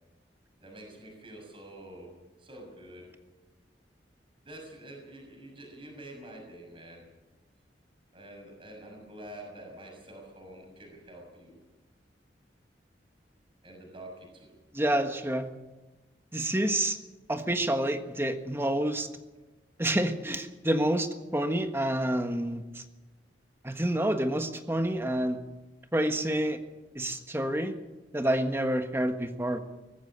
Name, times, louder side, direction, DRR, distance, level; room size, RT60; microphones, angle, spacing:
voice 1, 0.6-2.1 2.4-3.1 4.4-7.1 8.1-11.6 13.6-14.5, right 1 dB, 30° right, 0 dB, 6.5 m, -47 dB
voice 2, 14.7-15.5 16.3-17.0 17.3-19.1 19.8-22.8 23.6-25.4 25.9-26.6 26.9-27.7 28.1-29.6, right 1 dB, 15° right, 7 dB, 1.4 m, -28 dB
20.0 x 15.0 x 8.8 m, 1.2 s
head